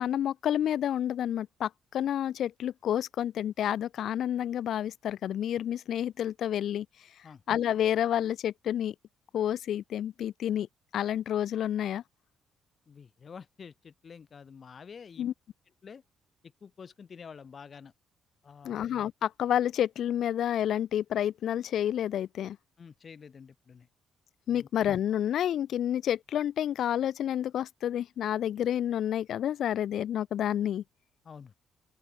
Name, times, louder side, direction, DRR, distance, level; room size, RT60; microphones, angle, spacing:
voice 1, 0.0-6.9 7.5-8.9 9.3-10.7 10.9-12.0 15.2-15.3 18.6-22.6 24.5-30.8, left 10 dB, 70° left, 0.7 m, -29 dB
voice 2, 12.9-15.3 15.8-16.0 16.6-17.9 18.4-18.8 22.8-23.9 24.5-24.7 31.2-31.5, left 6 dB, 45° left, 4.2 m, -48 dB
open air
cardioid pair, 90°, 0 cm